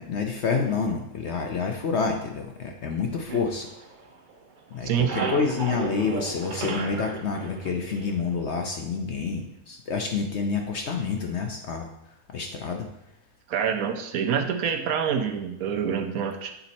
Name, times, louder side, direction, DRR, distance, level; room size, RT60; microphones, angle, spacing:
voice 1, 0.0-3.7 4.7-11.9 12.3-12.9, left 5 dB, 60° left, 3 dB, 0.8 m, -28 dB
sound 1, 3.3-4.4 4.7-8.4, right 3 dB, 45° right, 0.7 m, -34 dB
voice 2, 4.8-5.3 13.5-16.5, right 7 dB, 70° right, 7 dB, 1.1 m, -26 dB
7.0 x 4.1 x 4.1 m, 0.82 s
omnidirectional pair, 1.6 m